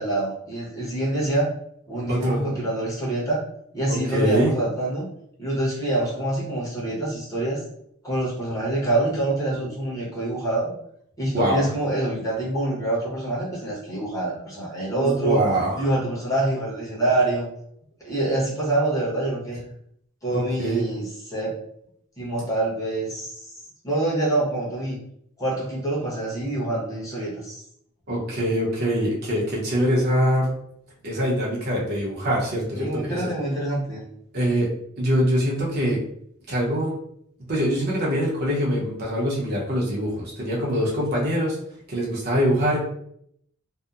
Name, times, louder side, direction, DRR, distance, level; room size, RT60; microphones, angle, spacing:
voice 1, 0.0-1.5 1.9-3.4 3.7-5.1 5.4-7.6 8.0-10.7 11.2-15.4 15.7-17.5 18.0-19.6 20.2-21.6 22.2-23.4 23.8-25.0 25.4-27.6 32.7-34.0, right 2 dB, 15° left, -6 dB, 1.0 m, -26 dB
voice 2, 2.1-2.4 3.9-4.6 11.3-11.7 15.0-15.9 20.3-20.8 28.1-30.5 31.0-33.2 34.3-34.7 35.0-36.0 36.5-37.0 37.5-41.6 41.9-42.8, equal, 50° right, -4 dB, 0.7 m, -23 dB
2.7 x 2.1 x 2.4 m, 0.69 s
head